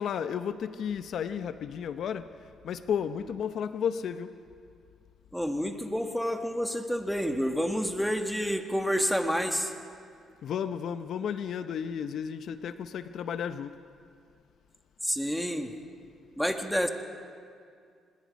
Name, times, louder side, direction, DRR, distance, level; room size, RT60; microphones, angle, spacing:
voice 1, 0.0-2.3 2.6-4.3 10.4-13.7, left 8 dB, 65° left, 11 dB, 0.7 m, -33 dB
voice 2, 5.3-9.7 15.0-15.7 16.4-16.9, equal, ahead, 5 dB, 1.7 m, -29 dB
26.0 x 20.5 x 5.3 m, 2.3 s
cardioid pair, 90°, 0 cm